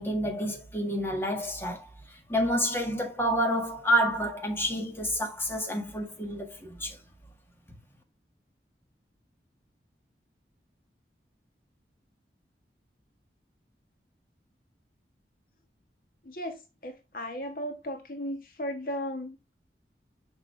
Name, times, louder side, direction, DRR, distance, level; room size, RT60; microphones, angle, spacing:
voice 1, 0.0-1.9 2.3-7.0, equal, 15° left, 1.8 m, -29 dB
voice 2, 16.2-16.6 16.8-19.5, equal, 50° left, 1.4 m, -36 dB
6.9 x 5.6 x 3.2 m
head